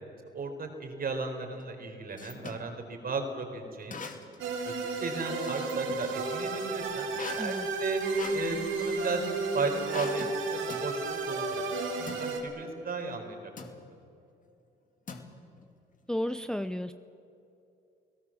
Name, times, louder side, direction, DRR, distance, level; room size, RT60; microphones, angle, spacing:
voice 1, 0.3-4.0 4.6-4.7 5.0-8.0 8.3-13.4 13.7-13.8, right 3 dB, 50° right, 5 dB, 4.5 m, -35 dB
sound 1, 1.6-2.7 3.9-4.5 4.9-6.1 7.1-9.2 9.9-10.4 10.7-10.9 12.1-12.3 13.6-13.8 15.1-15.6, left 5 dB, 40° left, 2.7 m, -42 dB
sound 2, 4.4-12.4, right 3 dB, 80° right, 3.9 m, -33 dB
voice 2, 16.1-16.9, left 1 dB, 5° left, 11 dB, 0.7 m, -32 dB
30.0 x 17.5 x 7.6 m, 2.7 s
cardioid pair, 90°, 20 cm